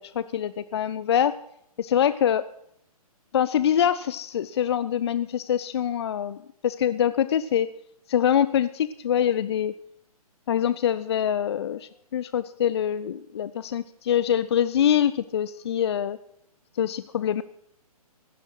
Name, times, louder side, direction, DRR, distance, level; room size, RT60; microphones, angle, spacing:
voice 1, 0.0-1.3 1.8-2.4 3.3-6.4 6.6-7.7 8.1-9.7 10.5-16.2 16.8-17.4, left 9 dB, 45° left, 16 dB, 0.5 m, -24 dB
16.0 x 14.0 x 4.8 m, 0.73 s
figure-of-eight pair, 130°, 19 cm